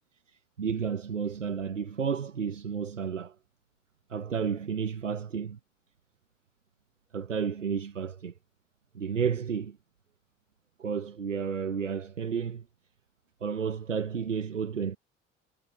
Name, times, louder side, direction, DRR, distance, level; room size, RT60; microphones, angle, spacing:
voice 1, 0.3-3.3 4.1-5.6 7.1-8.3 8.9-9.8 10.8-12.6 13.4-15.0, right 6 dB, 85° right, 1.0 m, -32 dB
figure-of-eight pair, 55°, 37 cm